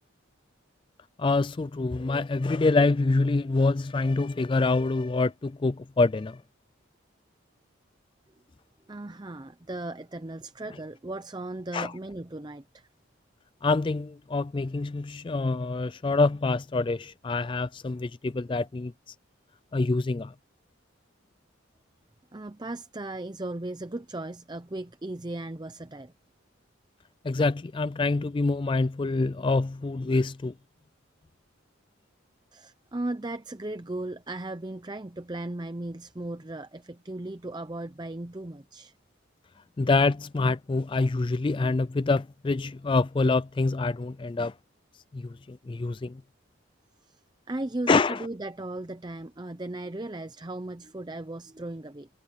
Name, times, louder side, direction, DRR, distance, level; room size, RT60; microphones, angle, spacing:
voice 1, 1.2-6.4 11.7-11.9 13.6-19.1 19.7-20.3 27.2-30.5 39.8-44.5 45.1-46.2 47.9-48.2, left 3 dB, 25° left, 0.3 m, -26 dB
voice 2, 8.9-12.9 22.3-26.1 32.5-38.9 47.0-47.2 47.5-52.1, right 2 dB, 20° right, 0.6 m, -36 dB
head